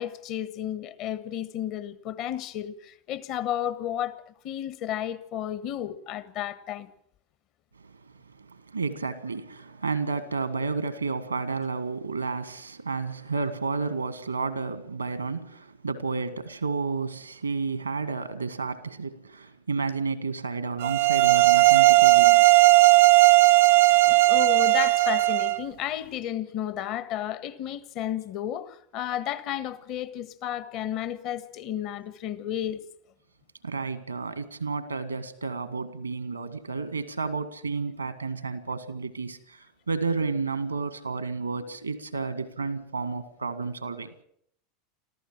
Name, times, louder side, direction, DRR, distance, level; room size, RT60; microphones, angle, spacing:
voice 1, 0.0-6.9 24.1-32.8, left 11 dB, 50° left, 1.4 m, -32 dB
voice 2, 8.4-22.6 33.6-44.1, right 4 dB, 90° right, 1.7 m, -31 dB
sound 1, 20.8-25.6, right 21 dB, 65° right, 0.9 m, -17 dB
26.0 x 14.5 x 7.6 m
figure-of-eight pair, 85°, 0 cm